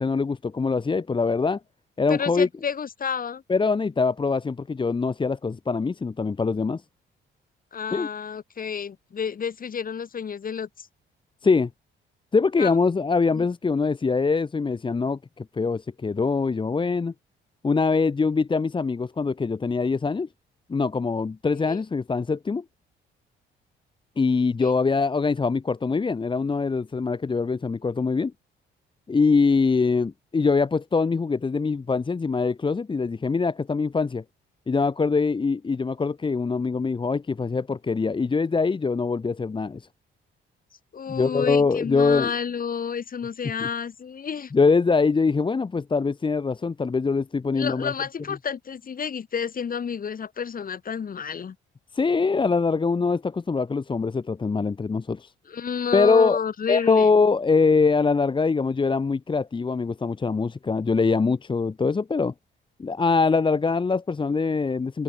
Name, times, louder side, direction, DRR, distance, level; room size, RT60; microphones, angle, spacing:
voice 1, 0.0-1.6 2.0-2.5 3.5-6.8 7.9-8.1 11.4-11.7 12.3-17.1 17.6-20.3 20.7-22.6 24.2-28.3 29.1-34.2 34.7-39.8 41.1-42.3 43.6-43.7 44.5-47.9 51.9-55.3 55.9-56.4 56.7-62.3 62.8-65.0, left 4 dB, 25° left, 0.9 m, -23 dB
voice 2, 2.1-3.4 7.7-10.9 12.6-12.7 13.3-13.4 21.6-21.8 24.6-24.7 40.9-44.5 47.5-51.5 55.5-57.1, left 7 dB, 45° left, 3.1 m, -30 dB
cardioid pair, 90°, 20 cm